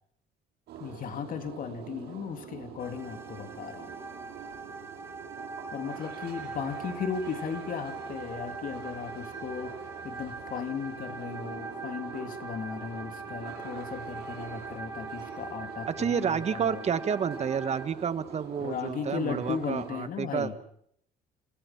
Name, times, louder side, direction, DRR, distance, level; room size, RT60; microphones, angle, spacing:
sound 1, 0.7-19.9, right 7 dB, 75° right, 7.7 m, -45 dB
voice 1, 0.8-3.9 5.7-9.8 10.0-16.8 18.6-20.6, left 7 dB, 55° left, 7 dB, 2.9 m, -36 dB
sound 2, 2.8-17.9, right 3 dB, 15° right, 2.7 m, -42 dB
voice 2, 15.9-20.6, right 7 dB, 40° right, 13 dB, 1.4 m, -30 dB
29.5 x 26.5 x 5.9 m, 0.70 s
cardioid pair, 110°, 17 cm